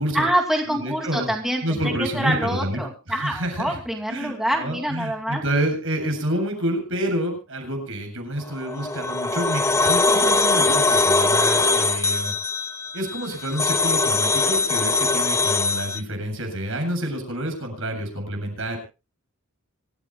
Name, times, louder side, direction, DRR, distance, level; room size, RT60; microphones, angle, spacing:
voice 1, 0.1-5.4, right 1 dB, ahead, 1 dB, 2.5 m, -26 dB
voice 2, 0.7-1.3 1.6-2.8 3.1-3.8 4.1-12.3 12.9-18.8, right 1 dB, 65° right, 4 dB, 7.8 m, -28 dB
sound 1, 8.5-16.0, left 3 dB, 15° left, 1.1 m, -21 dB
26.0 x 15.0 x 2.2 m, 0.32 s
head